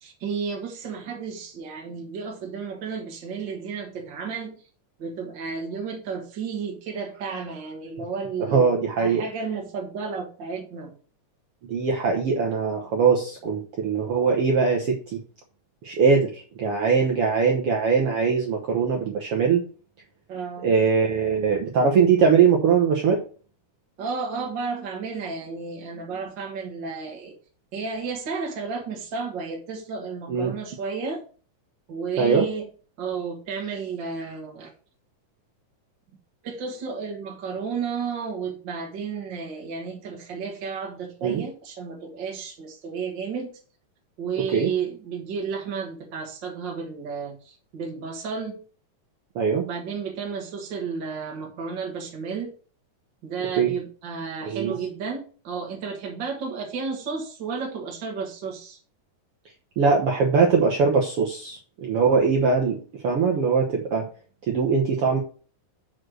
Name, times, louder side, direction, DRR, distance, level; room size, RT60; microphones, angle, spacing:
voice 1, 0.0-4.5 5.0-8.7 9.0-10.9 20.3-20.8 24.0-27.3 27.7-31.2 31.9-32.7 33.0-34.7 36.4-43.6 44.2-48.6 49.6-52.5 53.2-58.8, right 5 dB, 45° right, 0 dB, 1.7 m, -32 dB
voice 2, 8.4-9.2 11.7-15.2 15.8-19.6 20.6-23.2 30.3-30.5 32.2-32.5 41.2-41.4 44.5-44.7 49.3-49.6 53.6-53.7 54.4-54.7 59.8-62.8 63.0-64.0 64.5-65.2, right 5 dB, 65° right, 0 dB, 1.5 m, -21 dB
6.3 x 4.4 x 6.3 m, 0.40 s
omnidirectional pair, 3.8 m